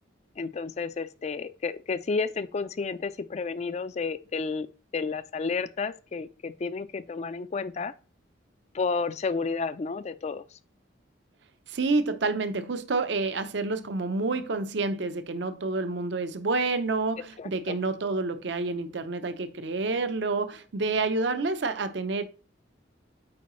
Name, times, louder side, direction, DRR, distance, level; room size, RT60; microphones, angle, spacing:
voice 1, 0.4-4.7 4.9-7.9 8.7-10.4 17.4-17.8, left 4 dB, 35° left, 0.3 m, -31 dB
voice 2, 11.7-22.2, right 3 dB, 65° right, 0.6 m, -28 dB
8.5 x 4.6 x 3.0 m
head